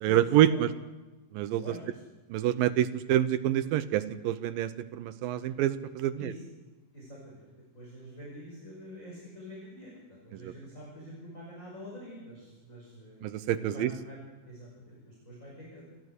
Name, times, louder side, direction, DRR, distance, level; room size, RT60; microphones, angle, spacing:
voice 1, 0.0-0.7 1.3-1.6 2.3-6.3 10.4-10.5 13.2-13.9, right 12 dB, 80° right, 12 dB, 2.5 m, -27 dB
voice 2, 1.6-2.0 5.4-5.5 6.2-6.4 6.9-7.5 7.7-14.2 14.4-15.8, equal, 20° left, -4 dB, 6.0 m, -46 dB
28.5 x 14.0 x 8.2 m, 1.1 s
omnidirectional pair, 4.2 m